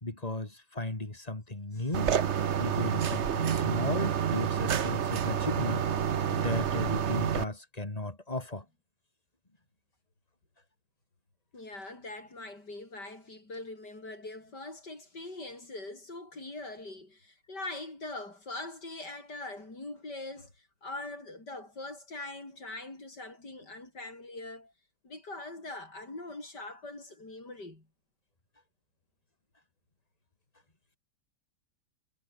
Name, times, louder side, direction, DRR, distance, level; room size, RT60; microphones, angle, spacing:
voice 1, 0.0-2.1 2.6-5.8 6.3-8.6, left 2 dB, 20° left, 3.2 m, -35 dB
sound 1, 1.9-7.4, right 8 dB, 50° right, 1.1 m, -29 dB
voice 2, 11.5-24.7 25.0-27.9, left 2 dB, 85° left, 7.8 m, -42 dB
omnidirectional pair, 1.8 m